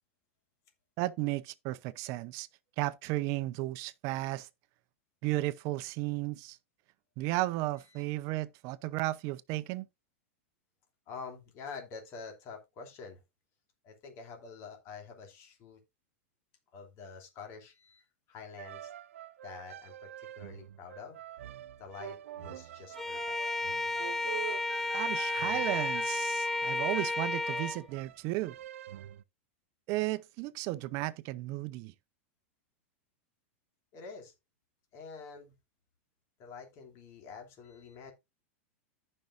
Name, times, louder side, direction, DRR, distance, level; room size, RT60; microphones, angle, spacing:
voice 1, 1.0-2.5 2.8-4.5 5.2-6.6 7.2-9.9 24.9-28.6 29.9-31.9, right 18 dB, 45° right, 0.7 m, -34 dB
voice 2, 11.1-13.2 13.8-15.8 16.7-18.9 19.4-21.2 21.8-23.6 33.9-34.3 34.9-35.5 36.4-38.1, left 5 dB, 40° left, 2.8 m, -47 dB
sound 1, 18.6-29.2, right 12 dB, 85° right, 0.6 m, -46 dB
Bowed string instrument, 23.0-27.8, left 2 dB, 5° left, 0.4 m, -32 dB
14.5 x 5.5 x 2.6 m
supercardioid pair, 135°, 7 cm